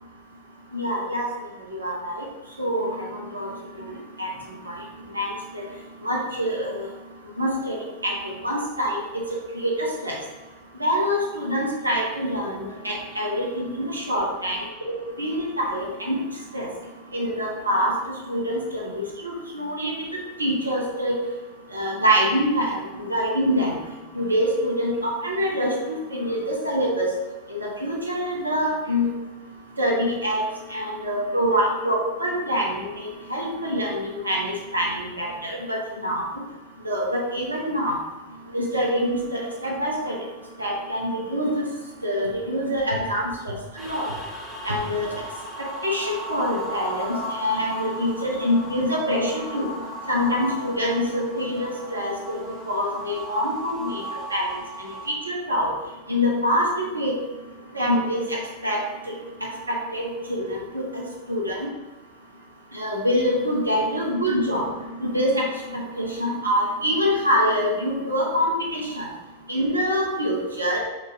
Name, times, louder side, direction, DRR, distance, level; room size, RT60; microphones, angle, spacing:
voice 1, 0.7-1.3 1.7-2.2 2.6-3.5 4.2-4.3 4.7-4.8 5.1-5.6 6.0-6.8 7.4-8.1 8.4-9.0 9.5-10.1 10.8-14.6 15.2-16.2 16.5-16.7 17.1-17.9 18.3-19.9 20.4-21.1 21.7-23.8 24.1-27.1 27.5-29.1 29.8-30.4 30.7-36.2 36.8-38.0 38.5-40.2 40.6-41.6 42.0-44.1 44.6-45.2 45.8-49.7 50.1-52.4 52.7-54.0 54.3-54.5 55.1-55.7 56.1-56.7 56.9-57.1 57.7-58.8 59.1-59.2 59.7-61.7 62.7-64.7 65.0-65.5 65.7-69.1 69.5-70.8, equal, 80° right, -2 dB, 0.8 m, -25 dB
sound 1, 43.8-55.1, equal, 15° left, 0.8 m, -36 dB
4.5 x 2.6 x 2.7 m, 1.2 s
figure-of-eight pair, 90°, 0 cm